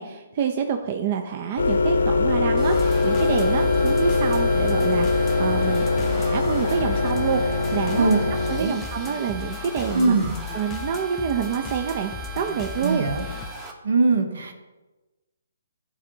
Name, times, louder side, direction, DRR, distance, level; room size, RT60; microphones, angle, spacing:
voice 1, 0.0-5.9 6.2-8.1 8.5-13.1, right 7 dB, 40° right, 5 dB, 0.5 m, -27 dB
sound 1, 1.6-8.6, left 3 dB, 85° left, 0.8 m, -22 dB
sound 2, 2.6-13.7, right 4 dB, 20° right, 0.9 m, -39 dB
sound 3, 2.7-13.5, left 6 dB, 20° left, 0.5 m, -37 dB
voice 2, 9.9-10.3 12.8-13.2 13.8-14.5, right 3 dB, 70° right, 7 dB, 0.9 m, -21 dB
12.5 x 4.2 x 2.7 m, 1.2 s
hypercardioid pair, 145°, 0 cm